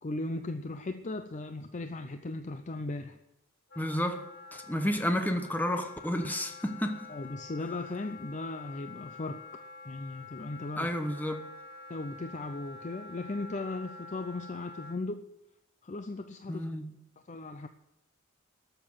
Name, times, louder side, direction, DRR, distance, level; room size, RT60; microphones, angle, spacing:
voice 1, 0.0-3.2 7.1-10.9 11.9-15.2 15.8-16.7 17.3-17.7, left 2 dB, 35° left, 8 dB, 0.6 m, -37 dB
Wind instrument woodwind instrument, 3.7-15.0, left 3 dB, 65° left, 1.8 m, -48 dB
voice 2, 3.8-4.2 4.5-7.1 10.7-11.5 16.5-16.9, equal, 10° left, 6 dB, 1.0 m, -31 dB
13.5 x 6.8 x 9.5 m, 0.83 s
head